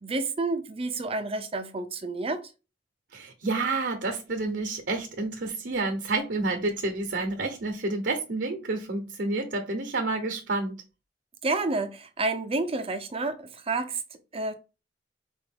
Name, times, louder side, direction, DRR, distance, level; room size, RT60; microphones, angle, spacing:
voice 1, 0.0-2.4 11.4-14.5, right 3 dB, 35° right, 0.6 m, -30 dB
voice 2, 3.1-10.7, right 3 dB, 70° right, 0.9 m, -29 dB
4.8 x 2.6 x 3.5 m
head